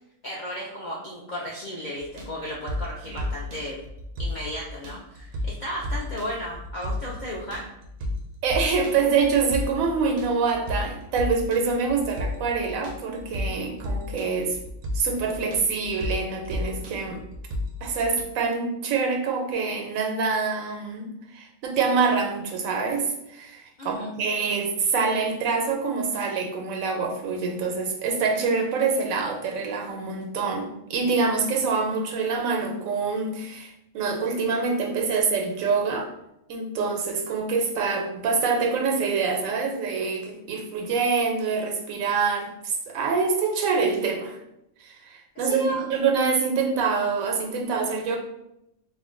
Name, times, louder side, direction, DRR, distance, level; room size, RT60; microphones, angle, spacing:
voice 1, 0.2-3.8 4.2-7.6 23.8-24.1 45.4-45.9, equal, 75° left, -4 dB, 0.4 m, -34 dB
sound 1, 2.0-18.2, left 1 dB, 60° right, 0.6 m, -33 dB
voice 2, 8.4-14.6 14.9-17.2 17.8-36.1 36.5-44.4 44.8-48.2, right 4 dB, 85° right, 2 dB, 1.0 m, -25 dB
2.5 x 2.1 x 3.6 m, 0.82 s
omnidirectional pair, 1.4 m